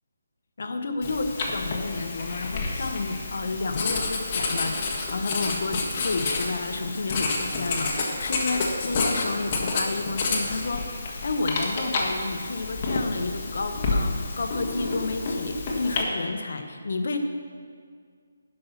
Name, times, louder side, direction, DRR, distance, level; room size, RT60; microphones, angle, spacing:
voice 1, 0.6-17.2, left 3 dB, 60° left, 6 dB, 1.0 m, -31 dB
Writing, 1.0-16.0, left 3 dB, 30° left, 1.3 m, -29 dB
11.5 x 5.5 x 5.8 m, 2.1 s
hypercardioid pair, 165°, 0 cm